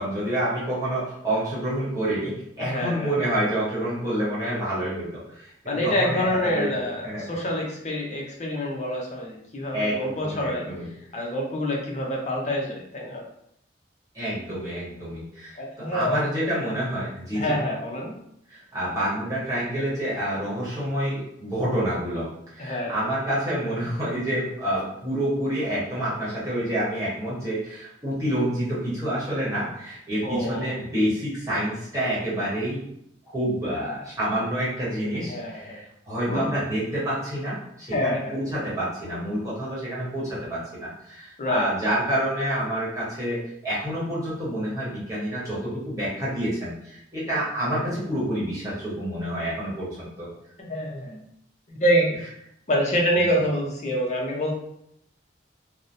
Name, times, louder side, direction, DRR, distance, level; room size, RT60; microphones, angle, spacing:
voice 1, 0.0-5.5 5.8-6.8 7.0-7.2 9.7-10.9 14.1-17.5 18.5-22.3 22.5-32.9 33.3-50.3 53.1-53.3, right 1 dB, 20° right, -9 dB, 1.1 m, -28 dB
voice 2, 2.6-3.1 5.7-10.7 11.1-13.2 15.6-16.7 17.3-18.2 22.6-23.1 30.2-30.7 35.3-35.8 36.3-36.6 37.9-38.4 41.4-41.7 50.6-51.2 51.7-52.2 52.7-54.5, equal, 40° left, -1 dB, 0.5 m, -26 dB
2.8 x 2.0 x 2.6 m, 0.74 s
head